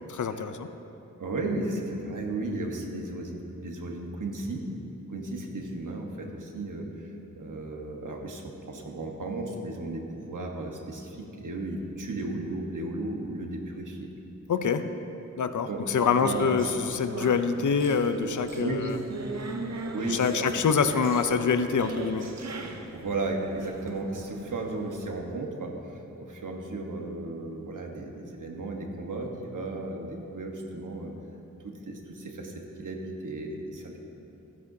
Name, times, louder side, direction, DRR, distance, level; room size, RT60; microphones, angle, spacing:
voice 1, 0.1-0.7 14.5-14.8 15.4-18.9 20.1-22.3, left 6 dB, 70° left, 9 dB, 0.6 m, -25 dB
voice 2, 1.2-4.7 5.1-14.1 15.7-15.8 16.2-16.5 18.6-18.9 19.9-20.6 22.9-31.1 31.6-34.0, right 2 dB, 75° right, 1 dB, 1.3 m, -35 dB
sound 1, 16.0-25.1, right 3 dB, 55° right, 0.7 m, -39 dB
15.0 x 9.8 x 2.7 m, 2.9 s
wide cardioid pair, 95°, 31 cm